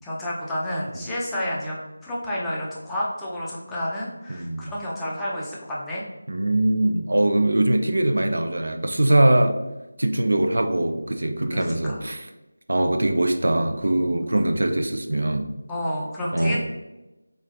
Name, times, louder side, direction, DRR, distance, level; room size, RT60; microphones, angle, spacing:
voice 1, 0.0-6.0 11.5-12.0 15.7-16.6, left 1 dB, 5° left, -7 dB, 0.4 m, -30 dB
voice 2, 4.3-4.7 6.3-9.6 10.0-12.3 12.7-15.5 16.3-16.6, right 1 dB, 55° right, 6 dB, 0.3 m, -22 dB
3.5 x 3.1 x 2.4 m, 1.0 s
figure-of-eight pair, 165°, 0 cm